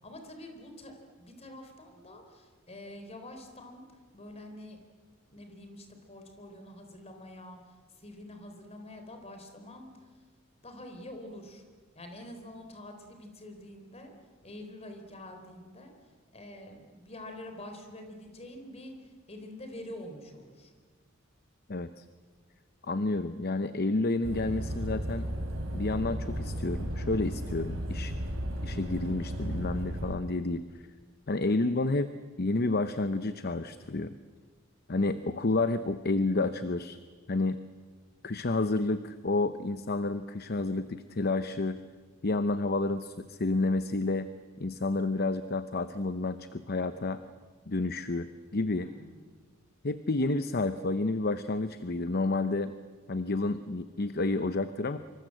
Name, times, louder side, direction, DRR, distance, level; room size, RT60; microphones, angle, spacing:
voice 1, 0.0-4.8 5.3-10.1 10.6-11.6 11.9-14.1 14.4-15.9 16.3-20.7 48.8-49.2, left 1 dB, 30° left, 6 dB, 4.2 m, -46 dB
voice 2, 21.7-22.0 22.8-25.3 25.7-28.1 28.6-30.6 31.3-34.1 34.9-37.0 37.3-37.6 38.2-41.8 42.2-44.3 44.6-47.2 47.7-48.9 49.8-52.7 53.1-55.0, left 2 dB, 50° left, 11 dB, 0.8 m, -30 dB
sound 1, 24.2-30.1, equal, 85° right, 4.9 m, -34 dB
26.0 x 25.0 x 7.8 m, 1.5 s
head